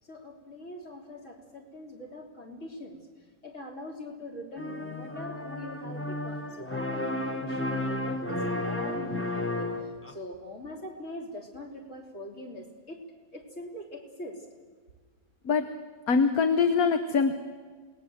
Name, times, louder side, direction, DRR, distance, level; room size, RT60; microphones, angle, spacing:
voice 1, 0.0-13.0 13.3-14.5, left 1 dB, 45° left, 0 dB, 3.6 m, -43 dB
sound 1, 4.6-10.1, left 1 dB, 10° left, 1.1 m, -32 dB
voice 2, 16.1-17.3, left 5 dB, 65° left, 8 dB, 1.5 m, -23 dB
27.5 x 19.0 x 7.8 m, 1.5 s
omnidirectional pair, 1.7 m